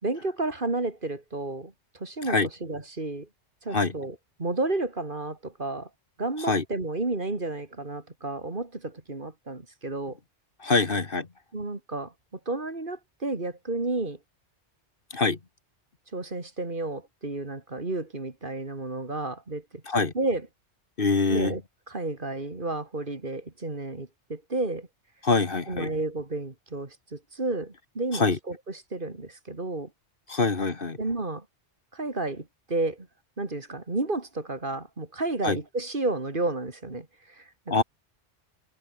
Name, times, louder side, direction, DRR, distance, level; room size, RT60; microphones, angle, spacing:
voice 1, 0.0-3.3 3.6-5.9 6.2-10.2 11.5-12.1 12.5-14.2 16.1-19.8 20.1-20.5 21.3-24.9 25.7-29.9 30.3-30.4 31.0-31.4 31.9-33.1 33.4-37.8, right 2 dB, 50° right, 2.9 m, -32 dB
voice 2, 10.6-11.3 15.1-15.4 19.9-20.1 21.0-21.5 25.2-25.9 28.1-28.4 30.3-31.0 35.4-35.6 37.7-37.8, left 3 dB, 50° left, 1.9 m, -24 dB
omnidirectional pair, 1.2 m